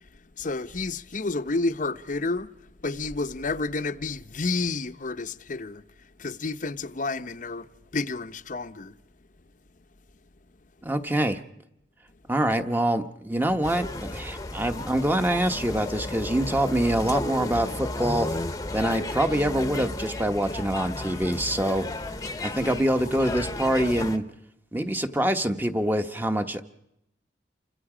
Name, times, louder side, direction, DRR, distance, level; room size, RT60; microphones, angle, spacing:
voice 1, 0.4-2.5 2.8-8.9 12.5-12.6 18.8-19.0 22.4-22.8, left 3 dB, 45° left, 0.8 m, -31 dB
voice 2, 10.8-11.4 12.3-18.4 18.7-21.9 22.4-24.2 24.7-26.6, right 1 dB, 10° right, 1.1 m, -25 dB
sound 1, 13.6-24.2, left 2 dB, 20° left, 1.0 m, -33 dB
29.0 x 24.5 x 5.0 m
head